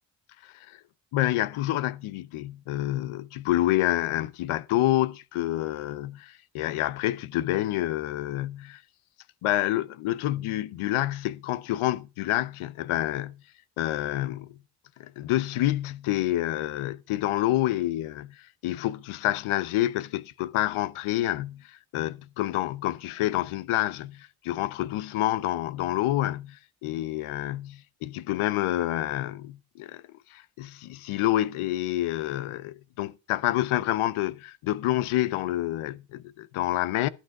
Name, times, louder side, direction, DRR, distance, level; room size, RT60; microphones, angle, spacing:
voice 1, 0.4-0.8 1.1-8.8 9.4-13.4 13.8-14.6 15.0-30.0 30.3-37.1, left 15 dB, 75° left, 0.8 m, -28 dB
11.5 x 8.0 x 4.7 m
hypercardioid pair, 45°, 50 cm